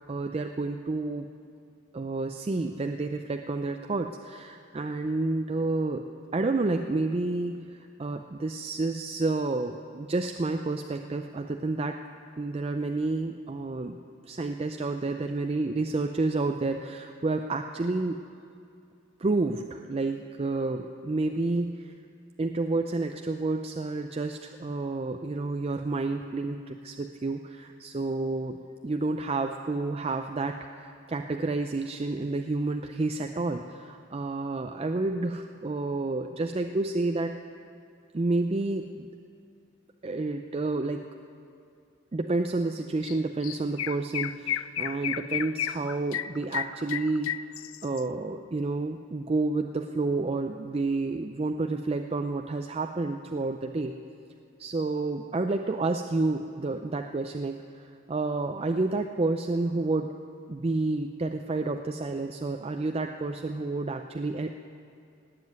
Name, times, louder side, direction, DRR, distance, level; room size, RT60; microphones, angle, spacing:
voice 1, 0.1-1.3 1.9-6.0 6.3-12.0 12.4-18.2 19.2-21.9 22.4-37.4 38.1-39.1 40.0-41.1 42.1-47.3 47.8-54.0 54.6-60.1 60.5-64.5, right 3 dB, 30° right, 5 dB, 0.4 m, -30 dB
Chirp tweet, 43.0-43.2 43.4-48.0, left 10 dB, 85° left, 0.4 m, -32 dB
18.5 x 7.6 x 9.3 m, 2.5 s
head